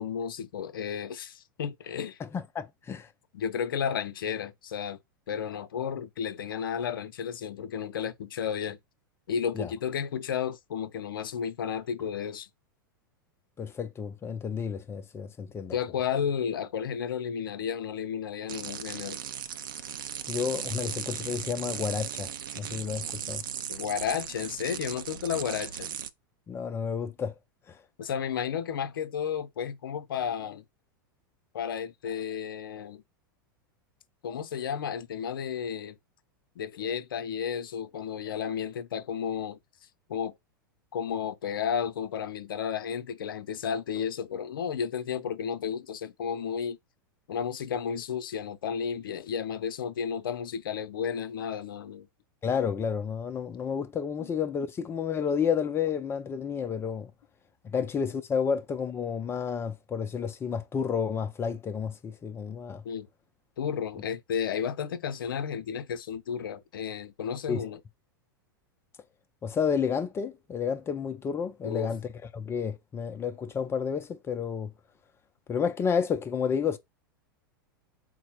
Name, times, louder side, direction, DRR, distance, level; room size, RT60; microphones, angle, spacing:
voice 1, 0.0-2.2 3.3-5.0 5.3-8.8 9.3-12.5 15.7-19.2 23.7-25.9 28.0-30.6 31.5-33.0 34.2-36.0 36.6-39.6 40.1-40.3 40.9-46.8 47.3-52.1 54.2-54.3 62.8-63.1 63.6-67.8 71.6-71.9, left 7 dB, 70° left, 0.6 m, -32 dB
voice 2, 2.2-3.1 9.6-9.7 13.6-15.8 20.3-23.4 26.5-27.3 27.7-27.8 52.4-57.1 57.6-62.8 67.5-67.6 69.4-72.0 72.3-74.7 75.5-76.8, left 6 dB, 20° left, 0.4 m, -31 dB
sound 1, 18.5-26.1, right 9 dB, 70° right, 0.5 m, -37 dB
4.0 x 2.1 x 4.2 m
hypercardioid pair, 95°, 12 cm